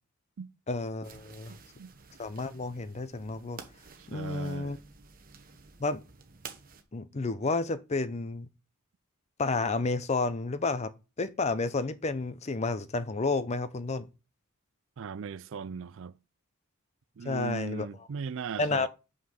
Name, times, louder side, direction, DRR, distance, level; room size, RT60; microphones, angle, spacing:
voice 1, 0.7-1.5 2.2-3.6 4.1-4.8 5.8-6.0 6.9-8.5 9.4-10.9 11.2-14.1 17.2-17.9 18.6-18.9, left 3 dB, 30° left, 0.6 m, -31 dB
sound 1, 1.0-6.8, right 5 dB, 40° right, 1.0 m, -51 dB
voice 2, 1.5-1.9 4.0-4.8 15.0-16.2 17.2-18.9, right 6 dB, 60° right, 0.4 m, -38 dB
5.9 x 5.5 x 6.4 m
head